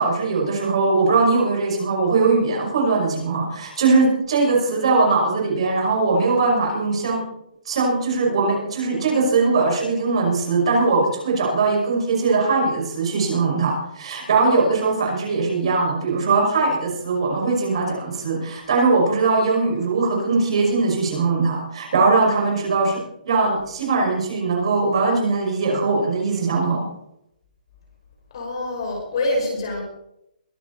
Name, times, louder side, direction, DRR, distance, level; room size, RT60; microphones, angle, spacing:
voice 1, 0.0-7.2 7.7-23.0 23.3-26.8, right 3 dB, 35° right, -1 dB, 5.6 m, -20 dB
voice 2, 28.3-29.8, left 2 dB, 35° left, 0 dB, 5.7 m, -25 dB
22.5 x 11.0 x 4.1 m, 0.79 s
hypercardioid pair, 180°, 5 cm